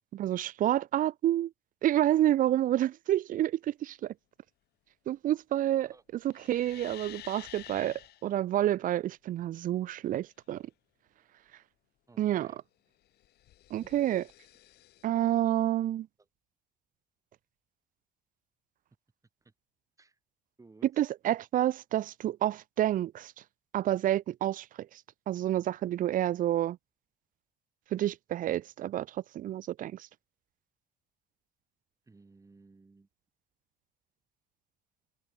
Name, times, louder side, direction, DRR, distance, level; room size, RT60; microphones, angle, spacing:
voice 1, 0.1-1.5 1.8-4.1 5.1-5.9 6.2-10.7 12.2-12.5 13.7-14.2 15.0-16.1 21.0-23.3 23.7-24.9 25.3-26.8 27.9-30.1, right 12 dB, 55° right, 0.5 m, -29 dB
sound 1, 6.3-8.2 13.0-15.0, left 14 dB, 75° left, 4.0 m, -50 dB
voice 2, 12.1-12.6 13.7-14.2 19.4-19.5 20.0-20.2 20.6-21.0 32.1-33.1, right 3 dB, 20° right, 6.6 m, -57 dB
cardioid pair, 110°, 17 cm